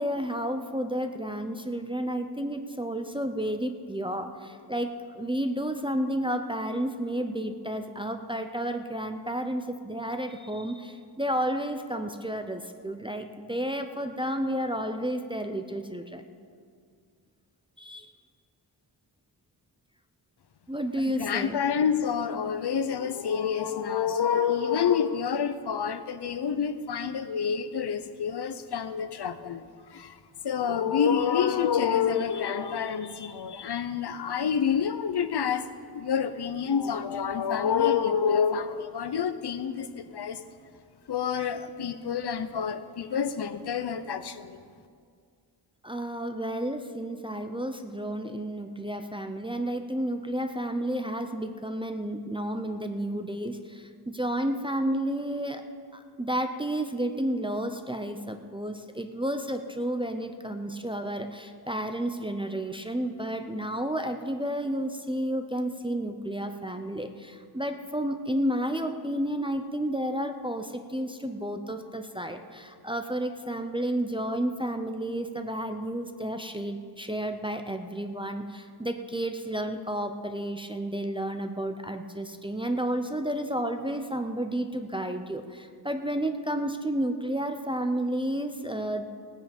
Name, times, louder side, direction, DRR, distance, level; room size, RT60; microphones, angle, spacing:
voice 1, 0.0-16.2 17.8-18.1 20.7-21.6 45.8-55.6 55.9-89.1, right 1 dB, 10° right, 5 dB, 0.5 m, -31 dB
voice 2, 21.2-30.2 30.4-35.7 35.9-40.4 41.1-44.6, left 7 dB, 60° left, 11 dB, 0.7 m, -28 dB
18.0 x 9.0 x 5.1 m, 2.2 s
wide cardioid pair, 170°, 45 cm